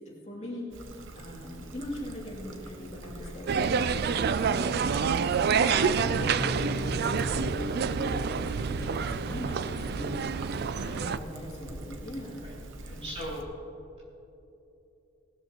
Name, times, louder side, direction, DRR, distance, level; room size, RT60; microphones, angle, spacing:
voice 1, 0.2-0.7 1.1-12.4 12.9-13.1, left 1 dB, 35° left, -5 dB, 2.8 m, -40 dB
Trickle dribble, 0.7-13.4, right 1 dB, 80° right, 1.0 m, -44 dB
sound 1, 3.5-11.2, right 6 dB, 55° right, 0.4 m, -28 dB
sound 2, 6.0-10.8, left 2 dB, 75° left, 1.7 m, -40 dB
voice 2, 12.8-13.5, equal, 35° right, -5 dB, 3.2 m, -41 dB
18.0 x 12.5 x 3.0 m, 2.9 s
head